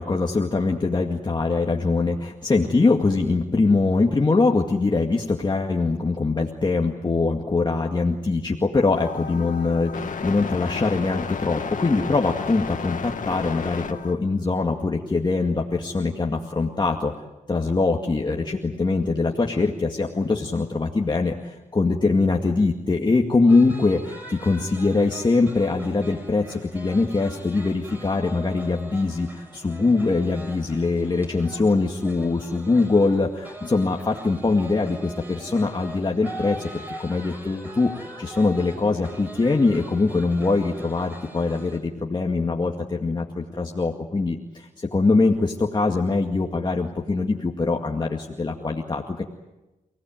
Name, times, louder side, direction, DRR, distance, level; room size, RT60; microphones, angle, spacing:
voice 1, 0.0-17.1 17.5-49.2, left 3 dB, 35° left, 1 dB, 2.1 m, -23 dB
sound 1, 8.9-14.1, left 6 dB, 80° left, 2.1 m, -32 dB
sound 2, 23.5-41.8, right 1 dB, 15° right, 6.9 m, -41 dB
29.5 x 18.0 x 9.1 m, 1.0 s
wide cardioid pair, 90°, 13 cm